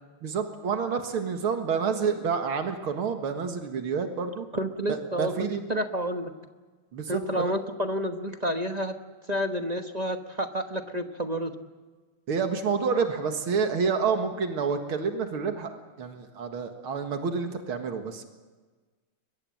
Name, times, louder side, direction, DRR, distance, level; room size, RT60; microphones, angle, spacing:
voice 1, 0.2-4.5 4.9-5.7 6.9-7.5 12.3-18.2, right 5 dB, 85° right, 5 dB, 2.6 m, -29 dB
voice 2, 4.5-6.3 7.1-9.0 9.3-11.5, equal, 30° right, 6 dB, 0.9 m, -30 dB
22.5 x 22.0 x 7.8 m, 1.3 s
omnidirectional pair, 2.3 m